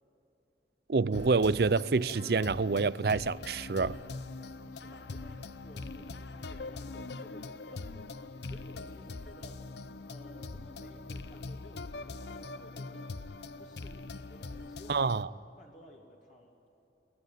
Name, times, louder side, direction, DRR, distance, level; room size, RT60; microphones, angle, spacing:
voice 1, 0.9-4.0 14.9-15.3, right 4 dB, 60° right, 0.5 m, -27 dB
sound 1, 1.1-15.2, left 3 dB, 75° left, 0.7 m, -43 dB
voice 2, 4.7-9.7 10.1-15.1 15.6-16.6, left 1 dB, 45° left, 3.0 m, -55 dB
24.0 x 18.5 x 9.3 m
head